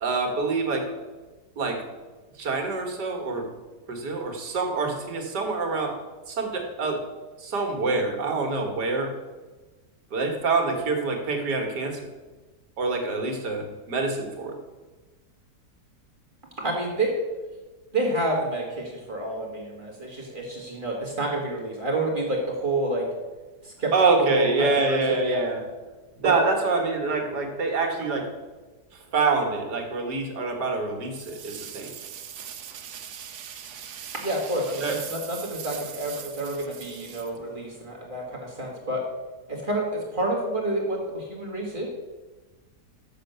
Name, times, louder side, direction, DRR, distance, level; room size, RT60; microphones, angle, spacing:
voice 1, 0.0-0.9 1.6-1.8 2.4-3.5 3.9-6.0 6.3-7.0 7.4-9.1 10.1-12.0 12.8-14.6 23.9-25.6 26.2-28.3 28.9-31.9 34.8-35.0, right 3 dB, 80° right, 3 dB, 2.0 m, -26 dB
voice 2, 16.6-17.1 17.9-23.1 23.6-23.9 24.2-25.4 26.2-26.5 34.2-39.1 39.5-41.9, right 1 dB, 30° right, -2 dB, 1.8 m, -28 dB
sound 1, 31.1-37.9, right 9 dB, 60° right, 0.8 m, -40 dB
6.8 x 6.5 x 6.7 m, 1.3 s
omnidirectional pair, 1.8 m